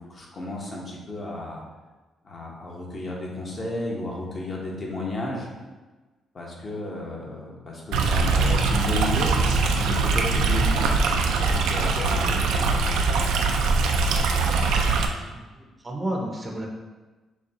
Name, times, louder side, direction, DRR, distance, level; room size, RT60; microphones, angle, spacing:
voice 1, 0.0-1.6 2.2-5.5 6.3-9.3 9.8-10.9 11.2-12.9, left 2 dB, 40° left, -2 dB, 1.1 m, -33 dB
Stream, 7.9-15.1, right 4 dB, 90° right, 0.4 m, -22 dB
voice 2, 15.3-16.7, right 1 dB, 20° right, 0 dB, 0.6 m, -32 dB
6.4 x 2.3 x 2.9 m, 1.2 s
cardioid pair, 90°, 0 cm